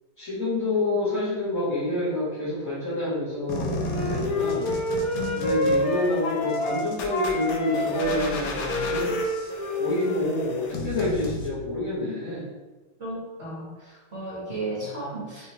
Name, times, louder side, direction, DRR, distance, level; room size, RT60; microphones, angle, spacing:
voice 1, 0.2-4.7 5.3-9.1 9.8-12.4 14.8-15.2, left 2 dB, 45° left, -12 dB, 1.5 m, -28 dB
sound 1, 3.5-11.5, left 2 dB, 90° left, 0.7 m, -34 dB
Wind instrument woodwind instrument, 3.8-6.8 7.1-10.4, left 1 dB, 65° left, 1.0 m, -28 dB
voice 2, 5.1-5.7 13.0-15.5, right 2 dB, 45° right, -7 dB, 0.8 m, -35 dB
3.6 x 3.4 x 2.8 m, 1.2 s
omnidirectional pair, 2.1 m